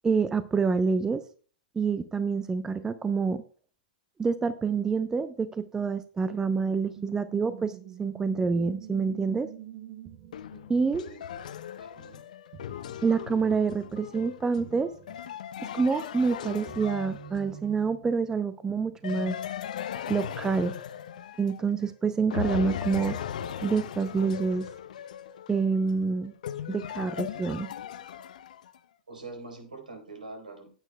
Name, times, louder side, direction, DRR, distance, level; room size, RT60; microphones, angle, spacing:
voice 1, 0.0-1.2 1.8-3.4 4.2-7.7 8.0-9.5 10.7-11.0 13.0-14.9 15.7-19.4 20.1-20.7 21.4-23.2 23.6-24.7 25.5-26.3 26.7-27.7, right 5 dB, 10° right, 13 dB, 0.6 m, -27 dB
sound 1, 6.6-12.2 12.5-13.3 13.5-13.6 14.6-15.3 16.1-19.5 20.2-20.7, right 10 dB, 40° right, 1.1 m, -47 dB
sound 2, 10.3-17.7 19.0-21.9 22.3-28.8, left 9 dB, 60° left, 0.7 m, -38 dB
voice 2, 11.8-12.2 29.1-30.8, right 3 dB, 80° right, 3 dB, 3.8 m, -44 dB
16.0 x 9.1 x 2.2 m, 0.40 s
figure-of-eight pair, 105°, 5 cm